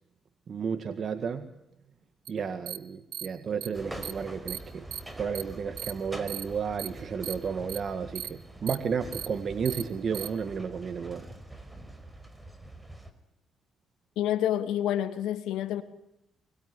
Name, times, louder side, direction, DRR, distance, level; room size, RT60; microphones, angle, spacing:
voice 1, 0.5-1.5 2.3-4.9 5.2-11.3, right 6 dB, 50° right, 1.9 m, -32 dB
sound 1, 2.3-2.4 2.7-2.8 3.1-3.3 3.6-3.7 4.0-4.1 4.5-4.6 4.9-5.0 5.3-5.4 5.8-5.9 6.3-6.4 6.8-6.9 7.2-7.3 7.7-7.8 8.1-8.3 8.7-8.8 9.1-9.3 9.6-9.8 10.1-10.3, right 10 dB, 75° right, 2.0 m, -36 dB
sound 2, 3.7-13.1, right 1 dB, 10° right, 4.9 m, -45 dB
voice 2, 14.2-15.8, left 11 dB, 90° left, 2.8 m, -28 dB
25.5 x 23.0 x 9.7 m
cardioid pair, 90°, 0 cm